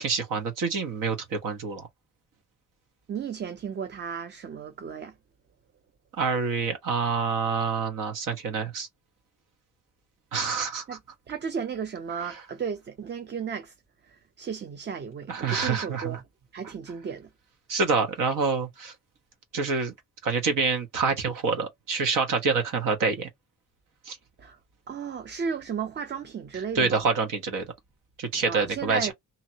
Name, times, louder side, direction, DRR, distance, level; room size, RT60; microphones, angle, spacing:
voice 1, 0.0-1.9 6.2-8.9 10.3-11.0 12.2-12.4 15.3-16.2 17.7-18.9 19.5-19.9 20.2-23.3 24.1-24.2 26.5-27.7 28.2-29.1, right 5 dB, 85° right, 1.2 m, -27 dB
voice 2, 3.1-5.1 10.9-11.0 11.3-13.7 14.4-16.2 16.5-17.3 24.4-24.6 24.9-27.1 28.5-29.1, right 6 dB, 35° right, 0.5 m, -34 dB
2.8 x 2.8 x 2.8 m
wide cardioid pair, 170°, 31 cm